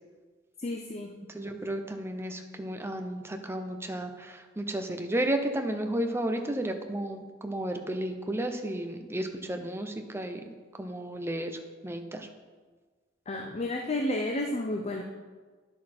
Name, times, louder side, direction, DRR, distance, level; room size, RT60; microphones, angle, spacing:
voice 1, 0.6-1.2 13.3-15.0, left 1 dB, 30° left, 3 dB, 0.6 m, -31 dB
voice 2, 1.3-10.4 10.8-11.5 11.8-12.3, right 1 dB, 10° right, 5 dB, 0.7 m, -33 dB
10.5 x 6.3 x 4.4 m, 1.4 s
head